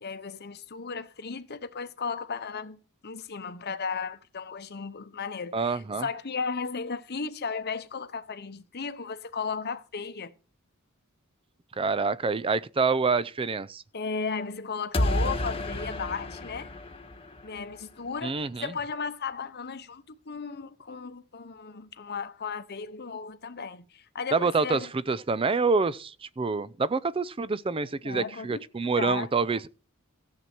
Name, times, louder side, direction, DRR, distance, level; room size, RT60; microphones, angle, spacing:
voice 1, 0.0-10.3 13.9-16.7 17.4-24.9 28.0-29.3, left 5 dB, 50° left, 0.9 m, -35 dB
voice 2, 5.5-6.1 11.8-13.8 18.2-18.7 24.3-29.7, right 4 dB, 25° right, 0.4 m, -27 dB
sound 1, 14.9-17.8, left 1 dB, 25° left, 1.3 m, -30 dB
14.0 x 7.7 x 4.4 m
head